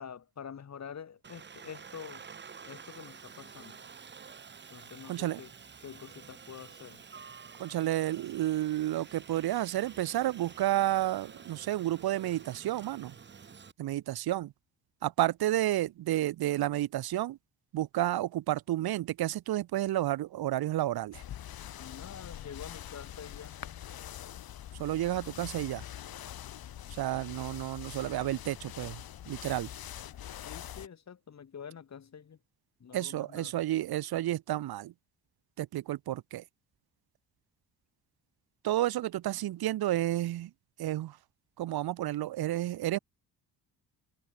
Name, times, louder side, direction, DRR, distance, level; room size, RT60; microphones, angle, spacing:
voice 1, 0.0-2.2 2.6-3.9 4.7-5.5 5.8-7.0 21.8-23.6 30.4-32.4 32.8-33.5, left 7 dB, 45° left, 5.6 m, -47 dB
Aircraft, 1.2-13.7, right 6 dB, 30° right, 1.3 m, -50 dB
voice 2, 5.1-5.4 7.6-13.1 13.8-14.5 15.0-17.4 17.7-21.2 24.8-25.8 27.0-29.7 32.9-34.9 35.6-36.4 38.6-40.5 40.8-41.2 41.6-43.0, right 14 dB, 80° right, 1.3 m, -31 dB
sound 1, 21.1-30.9, left 11 dB, 70° left, 3.9 m, -44 dB
cardioid pair, 120°, 37 cm